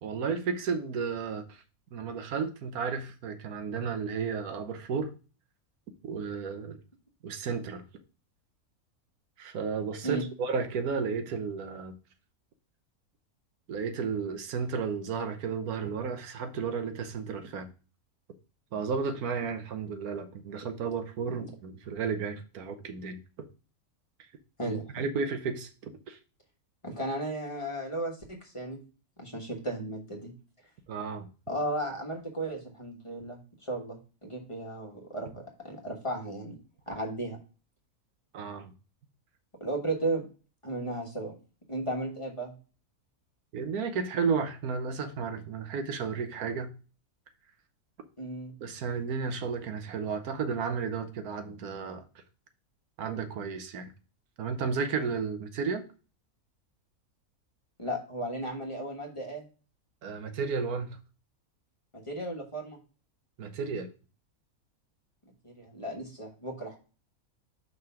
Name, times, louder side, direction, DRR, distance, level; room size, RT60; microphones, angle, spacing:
voice 1, 0.0-1.6 1.9-5.1 6.0-6.8 7.2-7.8 9.4-12.0 13.7-17.7 18.7-23.5 24.7-26.2 30.9-31.3 38.3-38.7 43.5-46.7 48.6-52.0 53.0-53.9 54.4-55.8 60.0-61.0 63.4-63.9, right 5 dB, 90° right, 1.4 m, -33 dB
voice 2, 24.6-25.1 26.8-28.8 29.2-30.3 31.5-36.6 36.9-37.4 39.6-40.3 40.6-41.3 41.7-42.5 48.2-48.6 57.8-59.5 61.9-62.8 65.4-66.8, right 1 dB, 20° left, 1.3 m, -35 dB
5.5 x 3.9 x 5.6 m
omnidirectional pair, 1.5 m